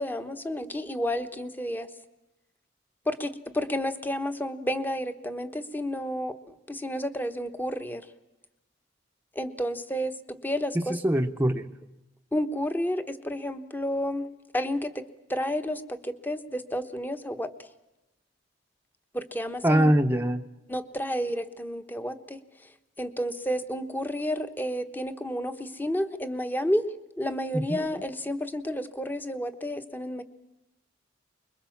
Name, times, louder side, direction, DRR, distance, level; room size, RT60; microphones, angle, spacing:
voice 1, 0.0-1.9 3.1-6.3 6.7-8.0 9.3-10.9 12.3-14.3 14.5-15.0 15.3-17.5 19.1-19.9 20.7-22.4 23.0-26.8 27.2-30.2, equal, 10° left, 9 dB, 1.2 m, -31 dB
voice 2, 10.7-11.7 19.6-20.4 27.5-27.8, right 1 dB, 10° right, 3 dB, 0.9 m, -23 dB
24.5 x 22.0 x 7.2 m, 0.99 s
head